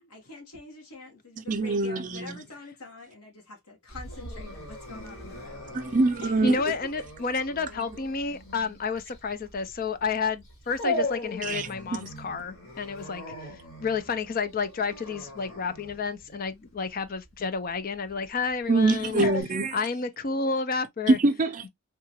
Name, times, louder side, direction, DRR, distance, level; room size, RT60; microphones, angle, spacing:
voice 1, 0.1-5.7 6.2-6.4 6.8-6.9, left 3 dB, 90° left, 1.3 m, -45 dB
voice 2, 1.5-2.4 5.7-6.6 11.4-11.7 12.0-12.1 18.7-19.8 21.1-21.6, right 2 dB, 35° right, 0.4 m, -24 dB
Dog, 3.9-19.4, left 1 dB, 70° left, 1.5 m, -38 dB
voice 3, 6.4-13.2 13.8-19.3 19.7-21.2, left 4 dB, 40° left, 0.4 m, -30 dB
3.8 x 2.4 x 2.7 m
head